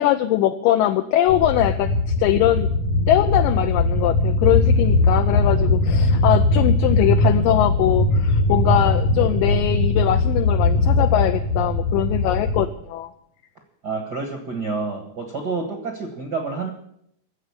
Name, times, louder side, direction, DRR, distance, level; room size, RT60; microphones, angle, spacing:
voice 1, 0.0-2.7 3.1-13.1, left 12 dB, 80° left, 7 dB, 2.2 m, -21 dB
sound 1, 1.3-12.7, left 2 dB, 60° left, 2.2 m, -20 dB
voice 2, 13.8-16.7, right 4 dB, 50° right, 2 dB, 1.2 m, -28 dB
14.0 x 7.9 x 9.6 m, 0.71 s
omnidirectional pair, 4.2 m